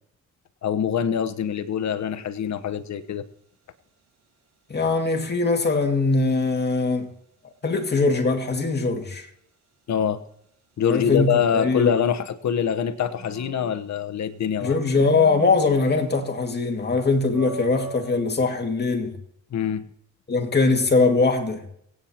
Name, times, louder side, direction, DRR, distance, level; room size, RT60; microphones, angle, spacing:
voice 1, 0.6-3.2 9.9-10.2 10.8-14.8 19.5-19.8, left 8 dB, 65° left, 1.1 m, -24 dB
sound 1, 1.2-1.6 10.9-12.3 12.7-14.4 14.9-16.4 16.8-16.9 17.3-18.1, right 2 dB, 55° right, 5.0 m, -40 dB
voice 2, 4.7-7.1 7.4-9.3 10.9-11.9 14.6-19.2 20.3-21.6, left 3 dB, 35° left, 2.2 m, -22 dB
24.5 x 9.0 x 2.9 m
cardioid pair, 65°, 30 cm